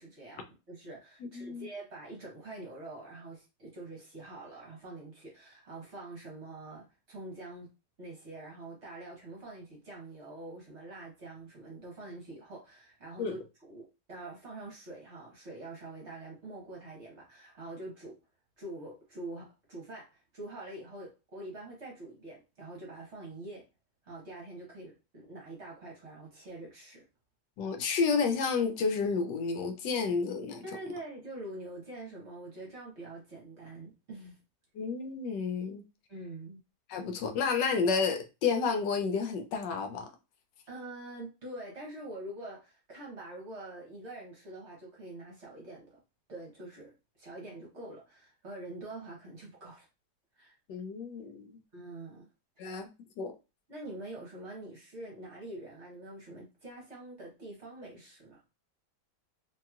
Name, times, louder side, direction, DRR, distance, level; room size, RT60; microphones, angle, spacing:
voice 1, 0.0-7.7 8.0-18.2 18.6-23.7 24.0-27.0 30.6-34.3 36.1-36.6 40.7-46.0 46.3-49.9 50.4-50.5 51.7-52.3 52.6-52.8 53.7-58.4, right 2 dB, 50° right, 1.1 m, -45 dB
voice 2, 1.3-1.7 13.2-13.3 27.6-30.6 34.8-35.8 36.9-40.1 50.7-51.6 52.6-52.9 53.2-53.3, left 5 dB, 80° left, 1.2 m, -30 dB
2.9 x 2.9 x 2.3 m
omnidirectional pair, 1.9 m